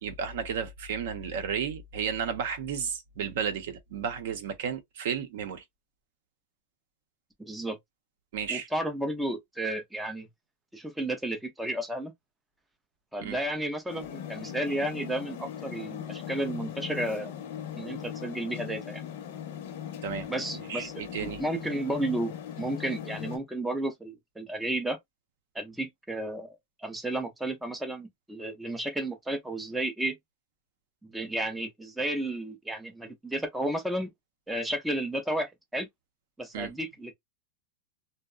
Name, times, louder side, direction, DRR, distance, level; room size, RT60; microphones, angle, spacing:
voice 1, 0.0-5.6 8.3-8.7 13.2-13.4 20.0-20.3 20.5-21.4 36.5-36.7, right 7 dB, 60° right, 0.6 m, -33 dB
voice 2, 7.4-7.8 8.5-10.3 10.7-12.1 13.1-17.3 17.8-19.0 20.3-20.9 21.2-25.0 25.6-30.2 31.0-34.1 34.5-35.9 36.4-37.1, right 1 dB, 5° right, 0.3 m, -32 dB
sound 1, 13.9-23.4, left 9 dB, 55° left, 0.6 m, -39 dB
2.7 x 2.0 x 2.3 m
supercardioid pair, 175°, 0 cm